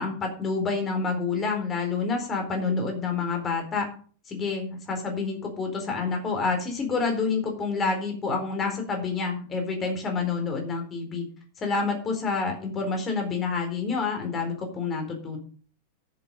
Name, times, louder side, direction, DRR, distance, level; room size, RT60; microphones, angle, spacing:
voice 1, 0.0-3.9 4.3-11.2 11.6-15.4, left 4 dB, 25° left, 3 dB, 4.1 m, -28 dB
11.0 x 7.6 x 5.4 m, 0.43 s
figure-of-eight pair, 90°, 0 cm